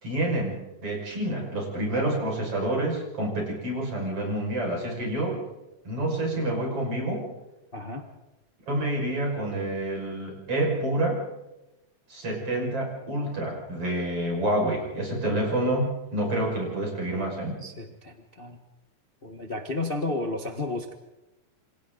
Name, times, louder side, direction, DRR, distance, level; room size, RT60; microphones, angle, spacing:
voice 1, 0.0-5.4 5.8-7.2 8.7-11.2 12.1-17.6, right 1 dB, 45° right, -1 dB, 6.6 m, -28 dB
voice 2, 7.7-8.1 17.6-18.6 19.2-20.9, left 2 dB, 70° left, 4 dB, 0.5 m, -32 dB
27.5 x 27.0 x 3.9 m, 1.0 s
omnidirectional pair, 3.6 m